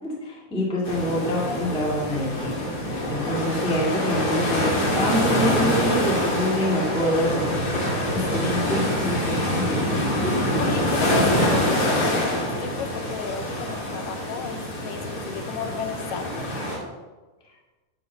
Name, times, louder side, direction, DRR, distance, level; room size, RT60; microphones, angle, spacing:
voice 1, 0.0-7.8 8.1-10.4, left 1 dB, 5° left, -5 dB, 0.5 m, -26 dB
sound 1, 0.8-16.8, equal, 45° left, 2.5 m, -25 dB
voice 2, 8.4-9.0 10.6-16.6, left 6 dB, 80° left, 6 dB, 2.2 m, -33 dB
9.7 x 3.9 x 6.0 m, 1.2 s
omnidirectional pair, 4.0 m